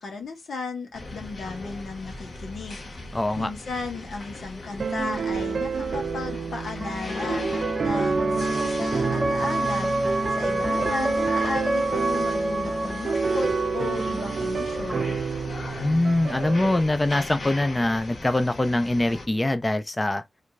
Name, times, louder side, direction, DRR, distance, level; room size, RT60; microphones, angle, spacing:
voice 1, 0.0-2.8 3.4-10.1 10.4-15.2, left 4 dB, 90° left, 1.6 m, -35 dB
sound 1, 0.9-19.3, left 2 dB, 65° left, 1.5 m, -39 dB
voice 2, 3.1-3.5 15.8-20.2, left 1 dB, 20° left, 0.5 m, -23 dB
sound 2, 4.8-16.8, right 5 dB, 70° right, 0.4 m, -29 dB
sound 3, 5.3-15.7, right 1 dB, 5° right, 1.3 m, -29 dB
5.0 x 3.2 x 2.5 m
wide cardioid pair, 80°, 0 cm